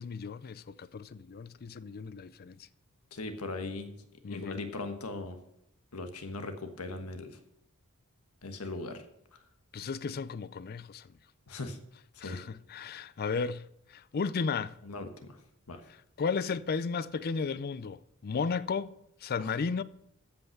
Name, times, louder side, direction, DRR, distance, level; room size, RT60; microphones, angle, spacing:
voice 1, 0.0-2.6 4.2-4.6 9.7-11.1 12.2-14.7 16.2-18.9 19.2-19.8, left 5 dB, 45° left, 0.4 m, -34 dB
voice 2, 3.1-3.9 4.3-5.4 5.9-7.4 8.4-9.0 9.3-9.4 11.5-11.8 12.1-12.4 14.8-15.4 15.7-15.8 19.4-19.5, left 2 dB, 85° left, 1.3 m, -39 dB
14.5 x 5.5 x 5.9 m
head